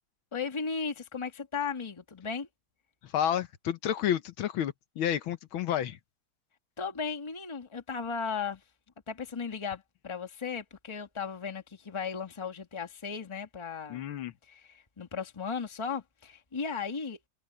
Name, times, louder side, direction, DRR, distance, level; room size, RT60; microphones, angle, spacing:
voice 1, 0.3-2.5 6.8-8.6 9.1-14.1 14.5-17.2, left 5 dB, 15° left, 1.3 m, -36 dB
voice 2, 3.0-6.0 13.9-14.3, left 10 dB, 70° left, 1.6 m, -30 dB
omnidirectional pair, 2.4 m